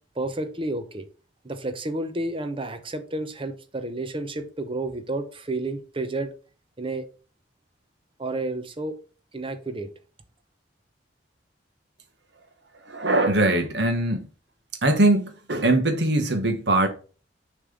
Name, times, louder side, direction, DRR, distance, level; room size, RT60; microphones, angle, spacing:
voice 1, 0.2-1.1 1.4-6.3 6.8-7.1 8.2-8.9 9.3-9.9, right 2 dB, 30° right, 0.9 m, -31 dB
voice 2, 12.9-14.3 14.8-16.9, right 2 dB, 65° right, 1.3 m, -21 dB
6.6 x 3.3 x 5.2 m
head